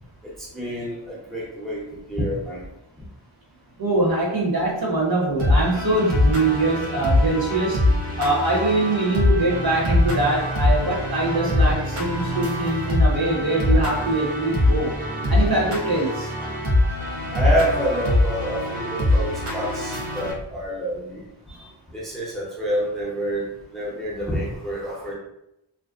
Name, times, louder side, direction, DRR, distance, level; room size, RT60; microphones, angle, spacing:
voice 1, 0.2-2.7 17.3-25.1, equal, ahead, -5 dB, 0.7 m, -28 dB
voice 2, 3.8-7.8 8.2-14.9 15.3-16.3, right 2 dB, 50° right, -4 dB, 0.9 m, -23 dB
sound 1, 5.4-20.3, left 1 dB, 85° right, 0.7 m, -23 dB
2.5 x 2.1 x 2.4 m, 0.82 s
wide cardioid pair, 50°, 48 cm